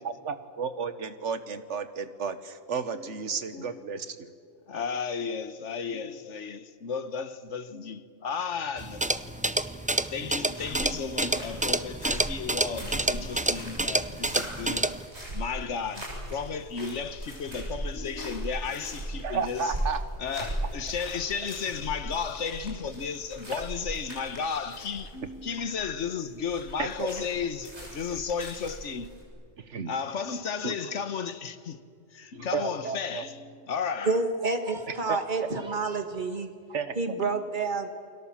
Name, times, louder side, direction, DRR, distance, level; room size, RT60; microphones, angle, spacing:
voice 1, 0.0-4.3 19.2-20.0 26.8-26.9 27.2-27.3 29.6-29.9 30.6-30.7 32.5-33.2 35.1-35.2 36.7-36.9, right 5 dB, 90° right, 1.5 m, -32 dB
voice 2, 3.5-3.8 4.7-9.7 10.1-14.9 15.3-19.7 20.2-29.1 29.9-31.8 32.1-34.2 37.2-37.4, left 6 dB, 85° left, 1.5 m, -34 dB
sound 1, 8.8-15.1, right 1 dB, 10° right, 0.4 m, -29 dB
sound 2, 10.4-29.2, right 1 dB, 70° right, 6.9 m, -39 dB
voice 3, 34.1-36.5 37.0-37.9, right 3 dB, 45° right, 2.0 m, -29 dB
29.5 x 22.0 x 7.4 m
omnidirectional pair, 1.2 m